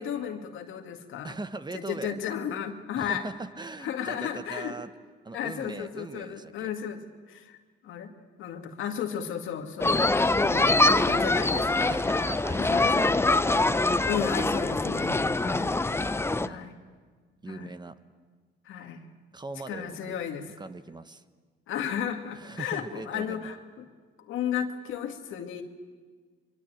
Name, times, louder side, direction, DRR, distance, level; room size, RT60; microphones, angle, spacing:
voice 1, 0.0-1.4 1.7-3.2 3.8-4.7 5.3-7.0 7.3-7.6 7.8-8.1 8.4-10.1 10.4-10.7 11.0-12.0 12.6-13.0 13.8-15.7 16.4-16.8 17.5-17.7 18.7-19.1 19.7-20.5 21.7-23.9 24.2-25.6, left 8 dB, 85° left, 6 dB, 2.1 m, -34 dB
voice 2, 1.2-2.2 2.9-4.9 5.2-6.7 10.7-13.5 14.9-15.1 15.5-16.0 16.3-16.7 17.4-18.0 19.3-20.2 20.6-21.2 22.3-23.5, right 3 dB, 20° right, 11 dB, 1.2 m, -40 dB
sound 1, 9.8-16.5, left 2 dB, 10° left, 0.7 m, -24 dB
23.5 x 23.0 x 9.0 m, 1.5 s
cardioid pair, 90°, 20 cm